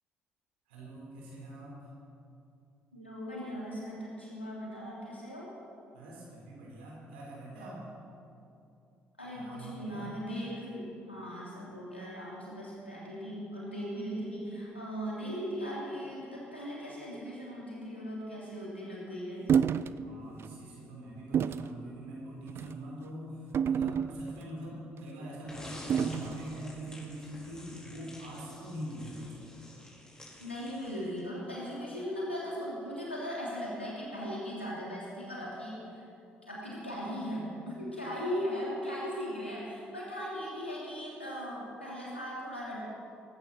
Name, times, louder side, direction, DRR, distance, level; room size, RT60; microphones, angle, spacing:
voice 1, 0.7-1.9 5.9-7.9 9.3-10.1 19.9-29.3, equal, 70° right, -4 dB, 4.7 m, -43 dB
voice 2, 2.9-5.5 9.2-19.6 30.4-36.1 36.5-42.8, equal, 85° left, -5 dB, 3.1 m, -38 dB
sound 1, 19.5-19.9 20.4-20.6 21.3-21.7 22.5-22.8 23.5-24.5 25.9-26.4, right 8 dB, 45° right, 0.5 m, -29 dB
sound 2, 25.5-31.4, left 1 dB, 10° left, 4.4 m, -49 dB
18.5 x 15.5 x 4.5 m, 2.6 s
figure-of-eight pair, 45°, 6 cm